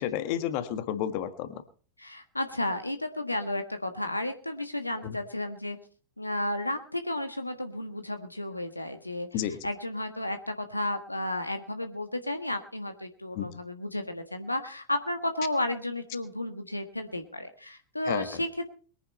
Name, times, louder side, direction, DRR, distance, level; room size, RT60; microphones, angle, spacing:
voice 1, 0.0-1.5 5.0-5.2 9.3-9.7 13.3-13.5 18.1-18.4, left 10 dB, 45° left, 10 dB, 1.5 m, -31 dB
voice 2, 2.0-5.8 6.2-9.3 9.6-18.7, left 1 dB, 85° left, 7 dB, 1.4 m, -33 dB
22.5 x 10.0 x 4.2 m, 0.40 s
figure-of-eight pair, 90°, 0 cm